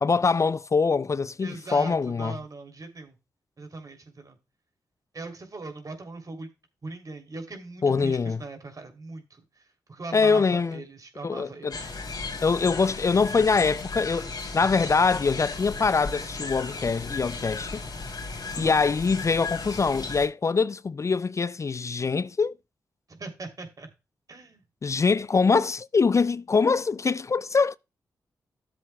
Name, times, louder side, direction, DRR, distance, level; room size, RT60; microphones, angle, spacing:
voice 1, 0.0-2.4 7.8-8.4 10.1-10.8 11.2-11.8 12.4-17.8 18.6-22.5 24.8-27.8, left 4 dB, 40° left, 0.3 m, -24 dB
voice 2, 1.4-3.2 3.6-4.4 5.1-6.5 6.8-11.9 18.5-18.8 23.1-23.9 24.3-24.6, right 3 dB, 50° right, 3.1 m, -40 dB
sound 1, 11.7-20.3, left 3 dB, 60° left, 3.1 m, -35 dB
13.5 x 7.5 x 2.3 m
supercardioid pair, 40°, 8 cm